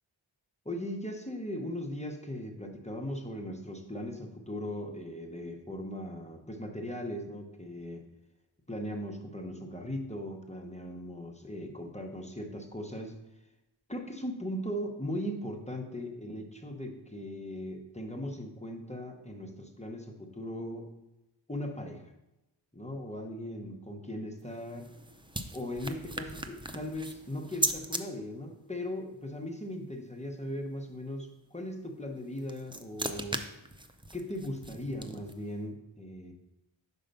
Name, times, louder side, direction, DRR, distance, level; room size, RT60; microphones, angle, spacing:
voice 1, 0.6-8.1 8.7-13.2 13.9-20.9 21.5-22.1 22.7-24.9 25.5-33.4 34.1-36.3, left 1 dB, 15° left, 2 dB, 0.7 m, -38 dB
sound 1, 24.4-28.0 32.2-35.5, right 2 dB, 10° right, 0.4 m, -38 dB
5.4 x 4.4 x 5.2 m, 0.94 s
wide cardioid pair, 55°, 47 cm